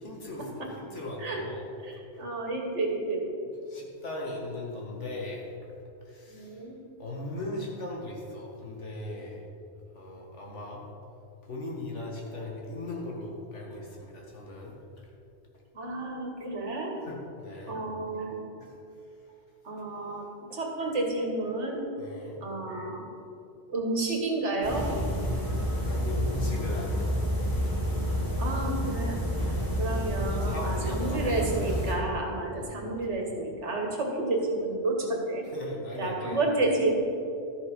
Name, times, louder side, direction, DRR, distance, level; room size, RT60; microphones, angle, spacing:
voice 1, 0.0-1.6 3.7-5.4 6.1-6.5 7.0-9.4 10.0-10.8 11.5-14.7 17.1-17.8 22.0-22.4 25.8-27.1 29.4-29.8 30.3-31.3 32.6-32.8 35.5-36.4, left 2 dB, 80° left, -1 dB, 2.1 m, -38 dB
voice 2, 1.8-3.3 6.3-6.8 15.7-16.9 17.7-18.4 19.6-20.2 20.5-21.8 22.4-23.1 23.7-24.9 28.4-29.2 29.8-35.4 36.0-36.9, right 2 dB, 75° right, 1 dB, 1.9 m, -30 dB
sound 1, 24.6-31.9, equal, 15° left, 2.2 m, -29 dB
13.0 x 7.0 x 5.3 m, 2.6 s
omnidirectional pair, 1.2 m